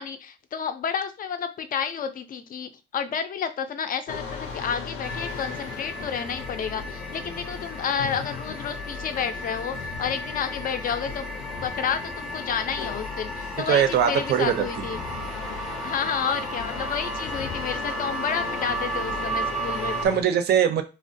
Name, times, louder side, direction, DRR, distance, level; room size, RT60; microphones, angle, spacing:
voice 1, 0.0-11.3 11.6-15.0 15.8-20.0, left 7 dB, 45° left, 10 dB, 0.4 m, -30 dB
sound 1, 4.1-20.2, left 5 dB, 90° left, 0.6 m, -38 dB
sound 2, 5.0-20.1, right 1 dB, ahead, 0.5 m, -34 dB
voice 2, 13.7-14.7 20.0-20.8, right 8 dB, 55° right, 8 dB, 0.5 m, -21 dB
2.4 x 2.1 x 2.6 m, 0.30 s
cardioid pair, 90°, 20 cm